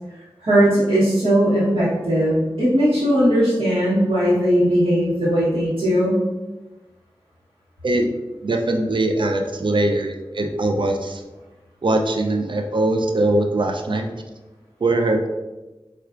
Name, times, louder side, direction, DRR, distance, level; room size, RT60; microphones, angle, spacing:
voice 1, 0.4-6.2, equal, 85° right, -13 dB, 1.1 m, -18 dB
voice 2, 8.4-11.2 11.8-14.2 14.8-15.3, right 2 dB, 60° right, 4 dB, 0.4 m, -21 dB
4.3 x 2.4 x 2.4 m, 1.1 s
cardioid pair, 40°, 9 cm